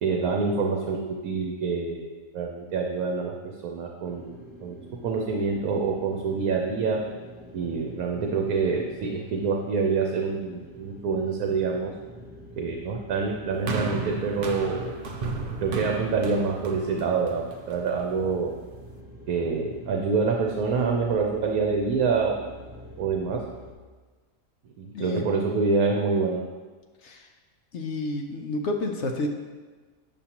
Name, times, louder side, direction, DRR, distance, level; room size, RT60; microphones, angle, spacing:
voice 1, 0.0-3.3 3.6-4.7 5.0-7.0 7.5-11.9 12.6-14.9 15.6-18.5 19.3-22.5 23.0-23.4 24.8-26.4, right 4 dB, 75° right, 1 dB, 1.2 m, -26 dB
sound 1, 4.0-23.7, equal, 10° right, 0.6 m, -46 dB
sound 2, 13.7-18.0 18.8-18.9, right 4 dB, 50° right, 0.7 m, -34 dB
voice 2, 27.7-29.3, left 2 dB, 60° left, 3 dB, 0.9 m, -30 dB
9.0 x 6.9 x 2.9 m, 1.4 s
omnidirectional pair, 1.6 m